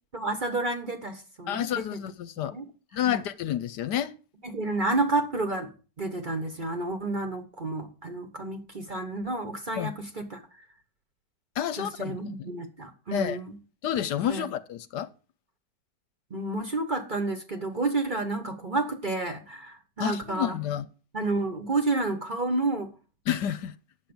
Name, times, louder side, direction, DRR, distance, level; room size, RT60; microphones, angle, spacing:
voice 1, 0.1-2.0 2.4-2.7 3.0-3.2 4.4-5.7 6.0-10.6 11.8-13.6 14.3-14.5 16.3-20.6 21.1-22.9, right 2 dB, 30° right, 1.1 m, -30 dB
voice 2, 1.5-2.5 2.9-4.1 9.8-9.9 11.6-12.2 13.1-13.4 13.8-15.1 20.0-20.8 23.3-23.7, left 10 dB, 70° left, 1.3 m, -29 dB
9.2 x 7.3 x 7.0 m
omnidirectional pair, 1.9 m